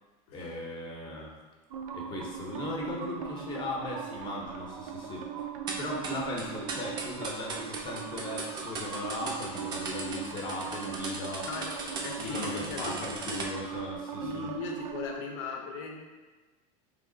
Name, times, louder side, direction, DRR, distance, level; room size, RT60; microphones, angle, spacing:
voice 1, 0.3-1.3 1.9-5.3 5.8-11.5 12.2-14.5, left 1 dB, 25° left, -1 dB, 0.7 m, -37 dB
sound 1, 1.7-15.2, right 7 dB, 90° right, 0.4 m, -40 dB
sound 2, 5.7-13.5, right 3 dB, 25° right, 0.4 m, -38 dB
voice 2, 11.5-13.0 14.2-16.0, left 4 dB, 75° left, 2 dB, 0.7 m, -39 dB
3.3 x 2.5 x 3.8 m, 1.3 s
supercardioid pair, 145°, 18 cm